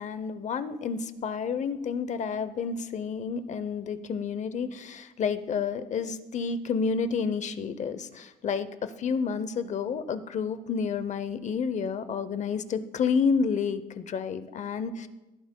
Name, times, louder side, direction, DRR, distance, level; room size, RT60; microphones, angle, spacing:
voice 1, 0.0-15.1, left 6 dB, 45° left, 12 dB, 0.7 m, -30 dB
17.0 x 10.0 x 2.2 m, 1.1 s
cardioid pair, 110°, 17 cm